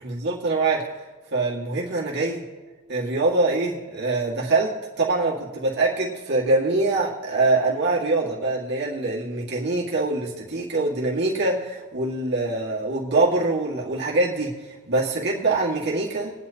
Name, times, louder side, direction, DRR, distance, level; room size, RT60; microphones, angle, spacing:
voice 1, 0.0-0.8 1.3-2.4 2.9-4.7 5.0-16.3, right 3 dB, 50° right, -4 dB, 2.0 m, -24 dB
22.0 x 9.3 x 2.9 m, 1.3 s
head